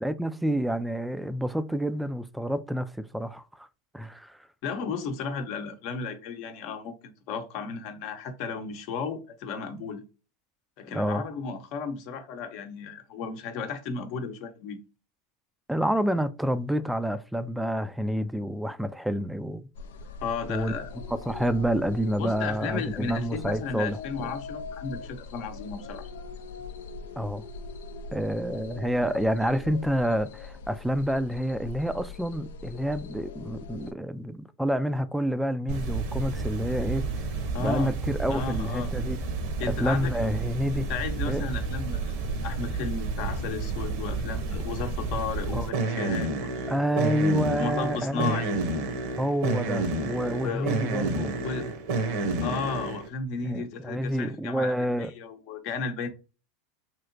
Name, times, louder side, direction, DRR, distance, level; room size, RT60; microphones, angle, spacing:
voice 1, 0.0-3.7 3.9-4.4 10.9-11.2 15.7-19.7 20.5-20.8 21.1-24.3 27.2-27.4 28.1-37.0 37.6-39.2 39.8-40.9 41.3-41.4 45.5-45.7 46.7-48.4 49.2-51.3 53.4-55.1, equal, 5° right, 0.3 m, -28 dB
voice 2, 4.6-10.0 10.8-14.8 20.2-20.9 22.2-26.1 37.5-37.9 38.3-38.9 39.6-40.1 40.7-46.7 47.6-48.6 50.3-50.7 51.4-51.7 52.4-56.1, left 5 dB, 60° left, 0.7 m, -34 dB
sound 1, 19.7-33.9, left 4 dB, 80° left, 0.4 m, -41 dB
sound 2, 35.7-53.1, right 3 dB, 65° right, 0.9 m, -30 dB
3.2 x 2.8 x 2.5 m
hypercardioid pair, 100°, 0 cm